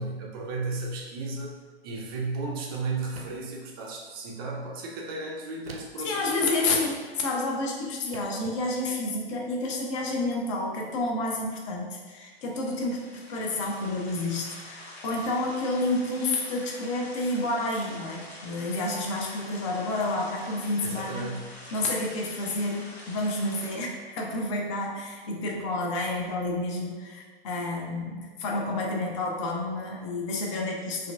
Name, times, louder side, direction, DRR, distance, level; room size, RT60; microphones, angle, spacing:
voice 1, 0.0-1.5 1.8-6.6 20.8-21.6, right 3 dB, 25° right, -2 dB, 0.4 m, -34 dB
sound 1, 3.1-3.6 5.7-6.1 7.4-7.6 8.1-8.5, right 4 dB, 75° right, 0.5 m, -45 dB
voice 2, 6.0-21.3 21.7-31.1, left 2 dB, 30° left, 0 dB, 0.5 m, -30 dB
sound 2, 12.4-23.8, left 1 dB, 80° left, 0.8 m, -46 dB
4.1 x 2.5 x 2.5 m, 1.5 s
figure-of-eight pair, 110°, 31 cm